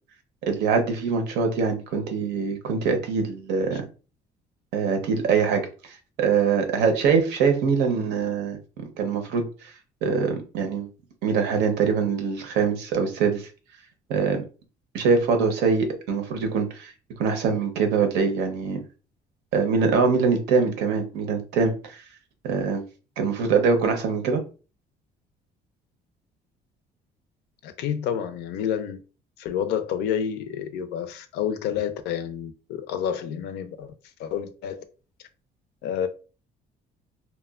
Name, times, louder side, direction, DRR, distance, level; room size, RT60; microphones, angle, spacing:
voice 1, 0.5-3.8 4.7-5.6 6.2-8.6 9.0-9.7 10.0-10.9 11.2-13.5 14.1-14.4 14.9-16.9 17.2-18.8 19.5-22.0 22.4-22.8 23.2-24.4, right 5 dB, 85° right, 0.6 m, -23 dB
voice 2, 27.6-29.0 29.4-33.9 34.2-34.8 35.8-36.1, left 9 dB, 75° left, 0.4 m, -29 dB
2.9 x 2.1 x 2.3 m
cardioid pair, 110°, 17 cm